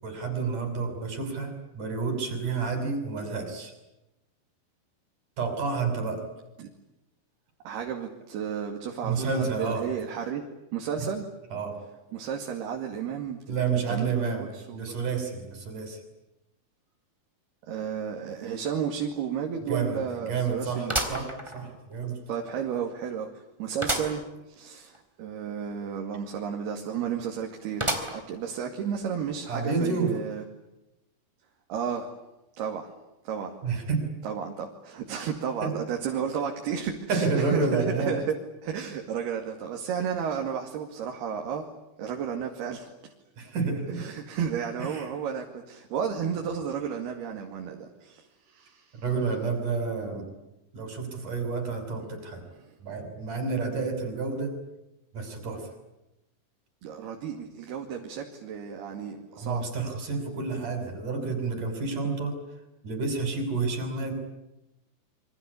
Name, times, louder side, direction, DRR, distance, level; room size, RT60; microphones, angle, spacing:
voice 1, 0.0-3.7 5.4-6.2 9.0-9.9 11.5-11.8 13.5-14.5 14.7-16.0 19.7-20.0 20.2-22.2 29.5-30.2 33.6-34.1 35.6-35.8 37.1-38.2 43.4-44.1 44.8-45.1 49.0-50.2 50.7-52.4 52.8-54.5 55.1-55.7 59.3-62.3 62.8-64.1, right 4 dB, 50° right, 6 dB, 7.7 m, -29 dB
voice 2, 7.6-10.4 10.7-11.2 12.1-13.6 13.9-14.8 17.7-21.0 22.3-30.5 31.7-32.2 32.6-32.9 33.2-33.5 34.2-38.4 38.6-41.7 42.0-43.1 43.9-49.0 52.6-52.7 56.8-59.6, right 7 dB, 85° right, 2 dB, 4.4 m, -33 dB
sound 1, 18.6-18.7 19.2-19.3 20.9-22.0 22.5-22.6 23.8-24.2 24.6-24.7 24.9-25.0 27.8-28.4 29.0-29.1 30.1-30.2, right 1 dB, 5° right, 3.5 m, -30 dB
28.0 x 25.0 x 8.5 m, 0.94 s
omnidirectional pair, 4.5 m